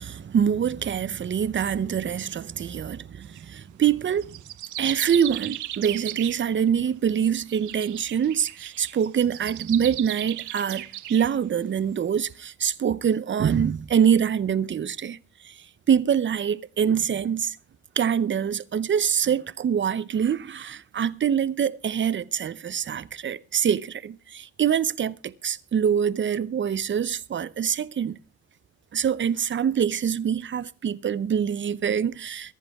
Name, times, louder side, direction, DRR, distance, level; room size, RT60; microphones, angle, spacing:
voice 1, 0.0-4.4 4.8-15.2 15.4-15.5 15.9-17.6 18.0-28.2 28.9-32.5, right 8 dB, 40° right, 0.7 m, -25 dB
sound 1, 3.2-3.4 4.2-6.7 7.1-11.3, right 15 dB, 80° right, 0.8 m, -36 dB
23.5 x 10.5 x 3.6 m
cardioid pair, 90°, 30 cm